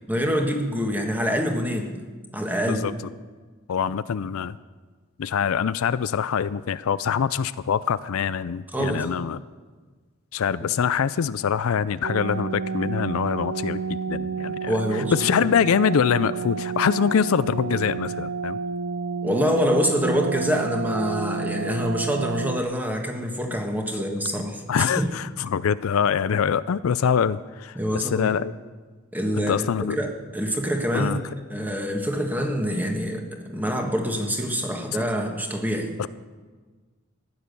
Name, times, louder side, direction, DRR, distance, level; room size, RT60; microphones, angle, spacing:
voice 1, 0.1-2.0 2.3-2.8 8.7-9.1 10.6-10.7 14.7-15.3 19.2-25.1 27.7-28.3 29.1-31.2 31.5-35.9, equal, 10° right, 3 dB, 1.6 m, -26 dB
voice 2, 3.7-4.5 5.2-9.4 10.3-14.8 15.1-18.6 24.7-28.5 29.4-30.0 30.9-31.2 36.0-36.1, left 7 dB, 75° left, 16 dB, 0.4 m, -24 dB
sound 1, 12.0-22.6, right 5 dB, 70° right, 0.5 m, -30 dB
15.0 x 9.9 x 6.8 m, 1.4 s
head